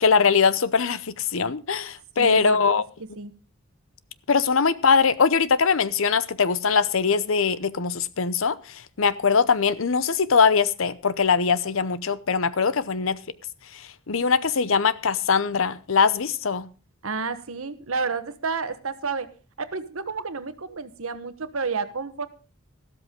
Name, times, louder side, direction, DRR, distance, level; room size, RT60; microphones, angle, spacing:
voice 1, 0.0-2.8 4.3-13.2 13.7-16.7, left 5 dB, 65° left, 0.8 m, -22 dB
voice 2, 2.2-2.7 3.2-3.3 17.0-19.3 19.6-22.3, right 4 dB, 75° right, 1.2 m, -30 dB
13.5 x 13.0 x 3.7 m
head